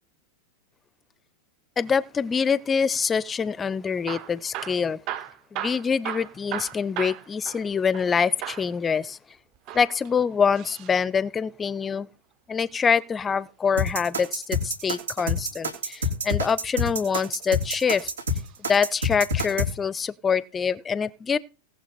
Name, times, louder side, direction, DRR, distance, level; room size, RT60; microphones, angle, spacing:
voice 1, 1.8-5.0 5.5-9.2 9.7-12.1 12.5-18.1 18.6-21.4, left 6 dB, 20° left, 0.5 m, -25 dB
Hammer / Drill, 3.9-8.1 8.4-8.7 9.5-11.0 12.7-14.0 15.7-16.1 16.8-17.7 18.4-18.6 18.9-19.0 19.6-19.7, right 12 dB, 40° right, 1.1 m, -37 dB
sound 1, 13.8-19.7, left 2 dB, 70° right, 3.0 m, -27 dB
18.0 x 7.2 x 4.3 m
figure-of-eight pair, 90°, 0 cm